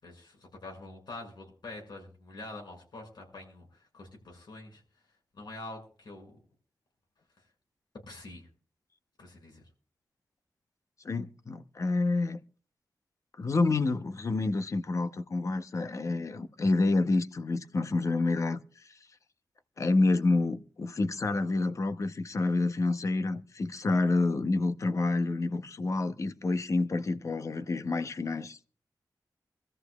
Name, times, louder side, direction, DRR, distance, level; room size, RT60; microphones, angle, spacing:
voice 1, 0.0-3.7 3.9-4.8 5.3-6.3 8.1-8.5 9.2-9.6, left 2 dB, 80° left, 6.2 m, -45 dB
voice 2, 11.0-12.4 13.4-18.9 19.8-28.6, left 3 dB, 45° left, 0.7 m, -28 dB
25.0 x 13.5 x 2.3 m
wide cardioid pair, 150°, 7 cm